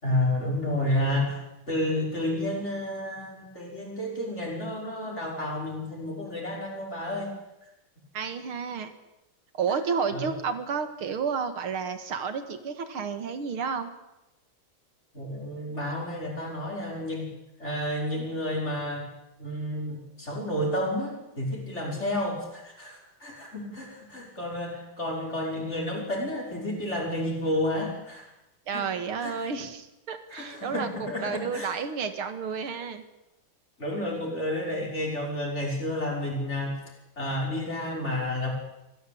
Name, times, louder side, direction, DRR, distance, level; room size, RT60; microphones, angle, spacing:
voice 1, 0.0-7.3 9.7-9.8 10.1-10.3 15.1-17.3 17.6-19.1 19.4-28.3 28.7-28.9 29.2-29.6 30.3-31.7 33.8-36.8 37.2-38.5, left 1 dB, 30° left, -1 dB, 6.1 m, -31 dB
voice 2, 8.1-8.9 9.5-13.9 28.7-33.0, right 6 dB, 85° right, 9 dB, 2.7 m, -31 dB
25.0 x 16.0 x 8.7 m, 0.92 s
omnidirectional pair, 2.3 m